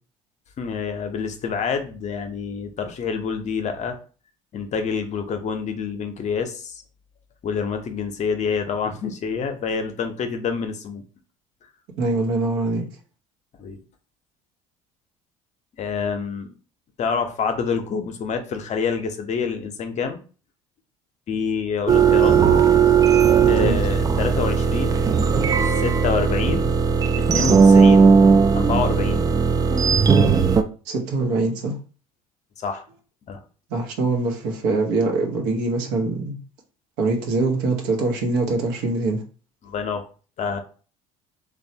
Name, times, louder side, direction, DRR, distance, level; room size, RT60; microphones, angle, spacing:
voice 1, 0.6-4.0 4.5-6.7 7.4-11.0 13.6-13.8 15.8-16.5 17.0-20.2 21.3-22.4 23.5-25.0 25.7-26.7 27.2-28.1 28.5-29.3 32.6-32.8 33.3-33.4 39.6-40.0 40.4-40.6, left 6 dB, 45° left, 0.6 m, -27 dB
voice 2, 12.0-12.8 23.6-23.8 30.9-31.8 33.7-36.4 37.0-39.2, right 3 dB, 75° right, 0.9 m, -23 dB
sound 1, 21.9-30.6, right 6 dB, 20° right, 0.3 m, -17 dB
3.2 x 2.2 x 2.7 m
hypercardioid pair, 75°, 17 cm